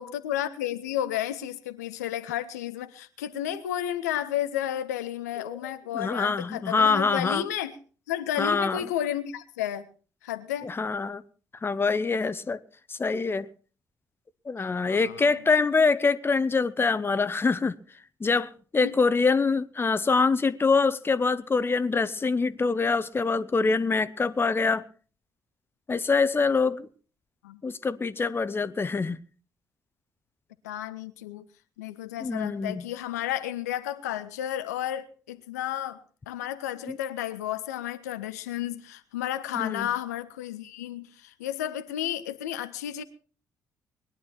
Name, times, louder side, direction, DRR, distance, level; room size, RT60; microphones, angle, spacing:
voice 1, 0.0-7.8 8.1-9.9 10.2-10.7 14.7-15.3 18.8-19.0 27.4-27.6 30.6-31.4 31.8-36.0 36.3-43.0, left 11 dB, 75° left, 0.7 m, -32 dB
voice 2, 5.4-7.4 8.4-8.8 10.6-11.2 11.6-12.6 12.9-13.5 14.5-17.8 18.2-24.8 25.9-26.9 27.6-29.2 32.2-32.8 36.9-37.0 39.5-39.9, left 4 dB, 25° left, 0.9 m, -25 dB
21.0 x 11.0 x 4.4 m
figure-of-eight pair, 40°, 9 cm